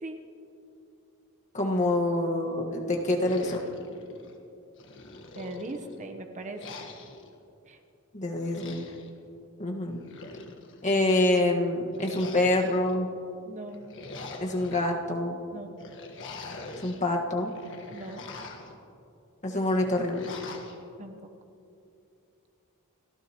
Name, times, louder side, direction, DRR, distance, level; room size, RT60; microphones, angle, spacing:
voice 1, 1.5-3.7 8.1-8.9 9.6-10.0 10.8-13.1 14.4-15.4 16.8-17.5 19.4-20.2, left 1 dB, 35° left, 1 dB, 1.6 m, -26 dB
sound 1, 3.2-4.4 4.8-6.0 6.6-7.3 8.3-9.1 9.9-10.9 11.9-12.9 13.7-14.9 15.8-17.0 17.4-18.8 19.6-20.8, left 3 dB, 60° left, 1.5 m, -43 dB
voice 2, 5.3-6.6 7.7-7.8 13.5-13.8 15.5-15.8 17.9-18.2 21.0-21.2, right 2 dB, 35° right, 4 dB, 1.0 m, -39 dB
29.5 x 15.0 x 3.0 m, 2.7 s
head